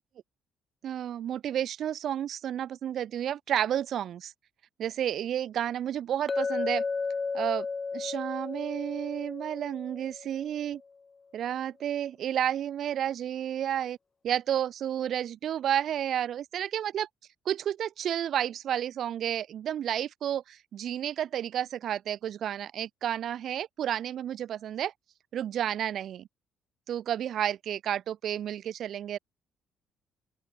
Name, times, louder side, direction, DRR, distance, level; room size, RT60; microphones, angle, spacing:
voice 1, 0.8-4.3 4.8-6.8 7.3-7.7 7.9-10.8 11.3-14.0 14.2-17.1 17.5-24.9 25.3-26.3 26.9-29.2, right 10 dB, 65° right, 2.3 m, -31 dB
Chink clink, 6.3-10.5, left 4 dB, 35° left, 1.5 m, -33 dB
open air
hypercardioid pair, 55°, 0 cm